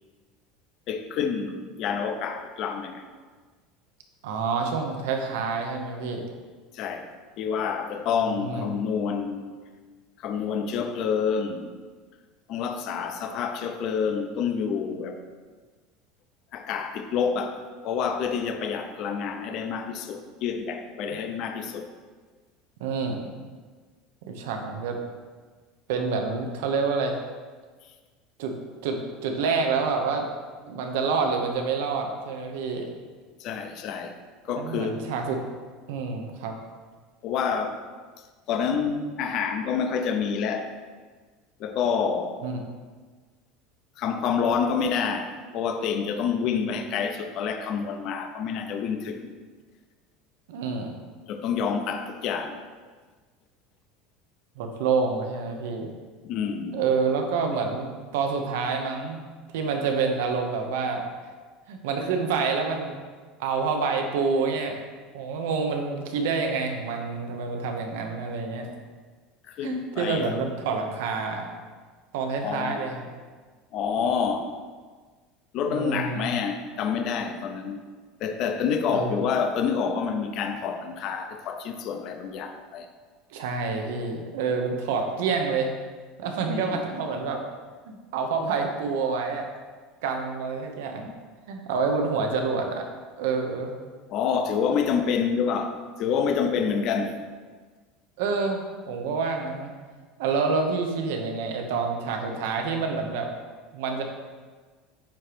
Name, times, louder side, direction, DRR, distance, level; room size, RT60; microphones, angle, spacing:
voice 1, 0.9-3.0 6.7-7.1 7.4-9.5 10.2-11.7 12.5-15.2 16.5-21.9 33.4-34.1 34.4-35.0 37.2-37.8 38.5-40.7 41.6-42.4 44.0-49.3 51.3-52.6 56.2-56.8 69.5-70.3 72.4-72.9 73.7-74.5 75.5-77.8 78.2-82.9 86.5-86.8 94.1-97.1, left 6 dB, 40° left, 6 dB, 0.6 m, -28 dB
voice 2, 4.2-6.2 8.3-8.7 22.8-23.3 24.3-25.0 25.9-27.2 28.4-28.5 28.8-30.3 30.7-32.9 34.5-35.4 35.9-36.5 42.4-42.6 50.5-50.9 54.6-55.9 56.7-59.2 59.5-61.0 61.7-63.0 63.4-64.8 65.1-68.7 69.6-71.5 72.1-73.0 75.7-76.3 78.9-79.1 83.3-85.7 86.2-87.4 87.9-89.5 90.0-91.1 91.5-92.9 93.2-93.7 98.2-99.7 100.2-103.3 103.7-104.0, right 4 dB, 85° right, 4 dB, 1.0 m, -27 dB
8.7 x 3.0 x 5.0 m, 1.5 s
cardioid pair, 170°, 0 cm